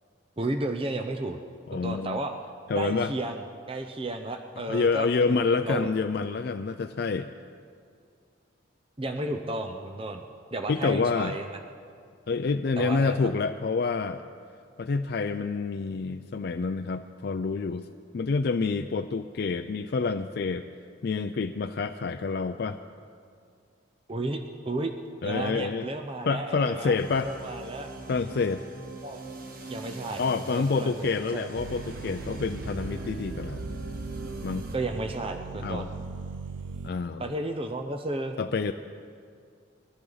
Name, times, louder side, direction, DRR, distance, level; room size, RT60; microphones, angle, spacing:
voice 1, 0.4-1.4 1.7-2.3 2.7-3.4 3.7-5.9 9.0-10.2 10.5-11.6 12.8-13.2 24.1-24.4 24.7-24.9 25.2-27.0 27.2-27.9 29.0-29.2 29.7-30.2 30.5-31.5 34.7-35.9 37.2-38.4, right 2 dB, 30° right, 5 dB, 0.6 m, -33 dB
voice 2, 1.7-2.2 2.7-3.1 4.7-7.3 10.7-11.4 12.3-14.2 14.8-17.9 18.1-20.6 21.0-22.8 25.2-25.9 26.3-27.3 28.1-28.6 30.2-33.6 34.4-34.6 35.6-35.9 36.8-37.3 38.4-38.7, left 4 dB, 55° left, 8 dB, 0.4 m, -27 dB
sound 1, 27.0-34.8, right 2 dB, 50° right, 1.4 m, -41 dB
sound 2, 31.6-36.9, right 4 dB, 80° right, 0.6 m, -39 dB
22.0 x 14.0 x 4.0 m, 2.3 s
head